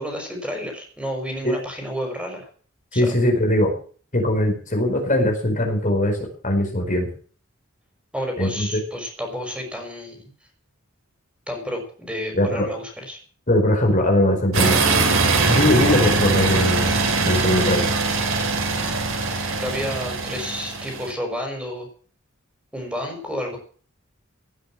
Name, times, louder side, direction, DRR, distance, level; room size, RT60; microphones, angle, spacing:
voice 1, 0.0-2.5 2.9-3.1 8.1-10.3 11.5-13.2 18.9-19.0 19.6-21.9 22.7-23.6, equal, 5° right, 3 dB, 5.9 m, -30 dB
voice 2, 2.9-3.7 4.1-6.2 6.4-7.1 8.4-8.8 12.3-12.7 13.5-14.8 15.5-16.9 17.2-17.9, left 1 dB, 40° left, 3 dB, 4.9 m, -20 dB
sound 1, 14.5-21.1, right 3 dB, 80° right, 4.2 m, -22 dB
18.0 x 8.6 x 7.6 m, 0.43 s
head